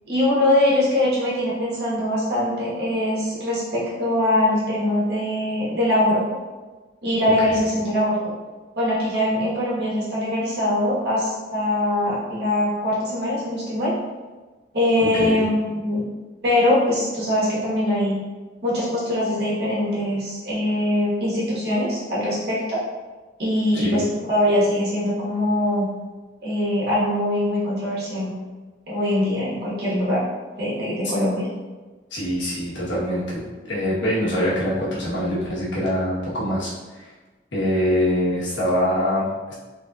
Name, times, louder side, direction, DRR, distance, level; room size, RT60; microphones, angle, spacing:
voice 1, 0.1-6.4 7.0-8.2 8.8-13.9 14.7-16.0 16.4-18.2 18.6-22.8 23.4-25.9 26.4-28.3 28.9-30.2 30.6-31.5, left 1 dB, 60° right, -8 dB, 1.4 m, -22 dB
voice 2, 32.1-36.7 37.0-37.1 37.5-39.5, equal, 85° left, -7 dB, 1.3 m, -24 dB
4.0 x 3.5 x 2.4 m, 1.3 s
head